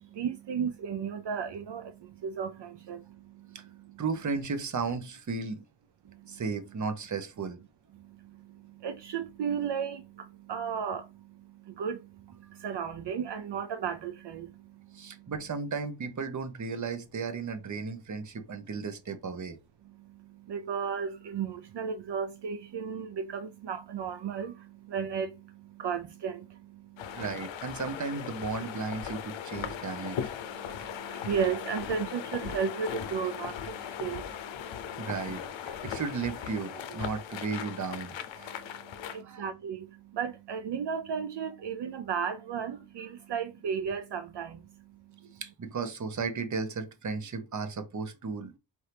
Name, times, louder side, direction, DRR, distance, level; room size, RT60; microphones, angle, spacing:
voice 1, 0.0-4.0 6.0-6.4 7.9-15.3 19.9-27.2 30.5-35.0 38.5-45.4, right 7 dB, 65° right, 0.6 m, -35 dB
voice 2, 4.0-5.6 6.3-7.6 14.9-19.6 27.1-30.2 35.0-38.6 39.1-39.4 45.3-48.6, right 4 dB, 40° right, 0.8 m, -35 dB
sound 1, 27.0-39.2, left 9 dB, 75° left, 0.7 m, -38 dB
4.4 x 2.7 x 3.3 m
cardioid pair, 75°, 46 cm